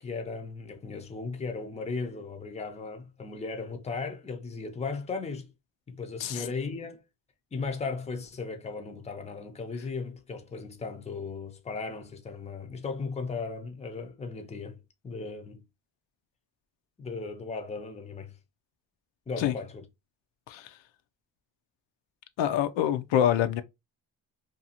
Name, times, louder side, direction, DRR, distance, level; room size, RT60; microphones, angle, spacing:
voice 1, 0.0-5.5 5.9-7.0 7.5-15.6 17.0-18.4 19.3-19.8, left 4 dB, 15° left, 0.5 m, -36 dB
voice 2, 20.5-20.8 22.4-23.6, left 10 dB, 80° left, 0.5 m, -26 dB
2.6 x 2.3 x 2.8 m
cardioid pair, 100°, 45 cm